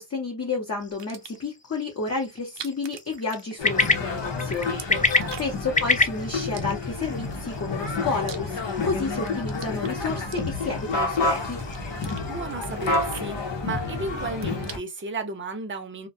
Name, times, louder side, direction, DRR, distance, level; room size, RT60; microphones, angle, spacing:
voice 1, 0.0-4.8 5.4-11.6, left 3 dB, 35° left, 0.7 m, -31 dB
sound 1, 0.8-12.5, left 3 dB, 20° left, 0.3 m, -31 dB
sound 2, 0.9-1.5 2.4-4.0 4.3-5.7 6.4-7.2 7.8-8.9 9.2-10.9 11.4-12.2 12.6-13.9 14.2-15.1, right 7 dB, 70° right, 0.6 m, -43 dB
sound 3, 3.6-14.8, left 3 dB, 90° left, 0.9 m, -29 dB
voice 2, 4.9-5.6 12.3-16.1, right 3 dB, 30° right, 0.6 m, -34 dB
2.4 x 2.1 x 2.6 m
wide cardioid pair, 125°, 43 cm